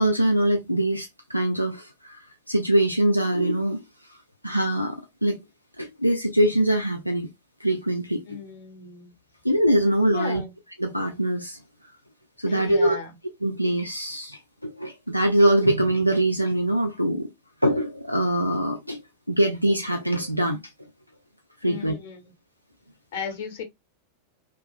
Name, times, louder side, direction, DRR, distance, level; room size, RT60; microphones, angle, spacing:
voice 1, 0.0-3.8 4.1-4.2 4.4-5.4 5.8-7.3 7.6-8.4 9.4-10.4 10.8-11.6 12.4-13.0 13.4-17.3 17.6-19.0 19.3-20.6 21.6-21.9, right 1 dB, 90° left, 0.3 m, -23 dB
voice 2, 8.3-9.1 10.1-10.5 12.4-13.1 21.6-22.3 23.1-23.6, left 6 dB, 55° left, 1.1 m, -35 dB
2.8 x 2.3 x 2.3 m
figure-of-eight pair, 90°, 0 cm